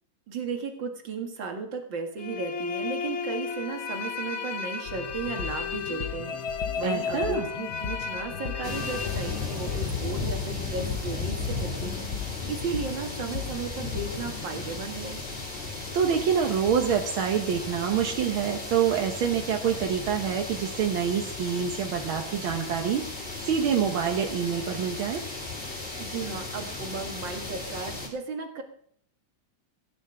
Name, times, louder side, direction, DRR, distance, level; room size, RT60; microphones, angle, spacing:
voice 1, 0.3-15.2 26.0-28.6, right 4 dB, 65° right, 4 dB, 2.6 m, -35 dB
sound 1, 2.2-9.9, left 5 dB, 50° left, 0.8 m, -34 dB
sound 2, 4.9-14.5, left 8 dB, 70° left, 1.9 m, -38 dB
voice 2, 6.8-7.4 15.9-23.0 23.4-25.2, right 8 dB, 85° right, 3 dB, 1.9 m, -26 dB
sound 3, 8.6-28.1, left 3 dB, 25° left, 2.8 m, -35 dB
16.5 x 9.9 x 4.9 m, 0.62 s
omnidirectional pair, 2.2 m